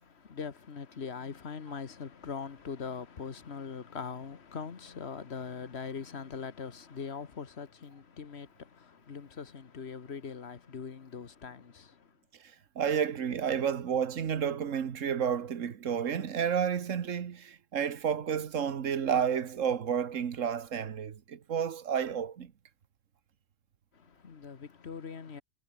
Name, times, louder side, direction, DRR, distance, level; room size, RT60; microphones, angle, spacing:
voice 1, 0.0-12.1 23.9-25.4, left 6 dB, 60° left, 1.7 m, -41 dB
voice 2, 12.4-22.5, right 8 dB, 90° right, 1.6 m, -31 dB
omnidirectional pair, 1.3 m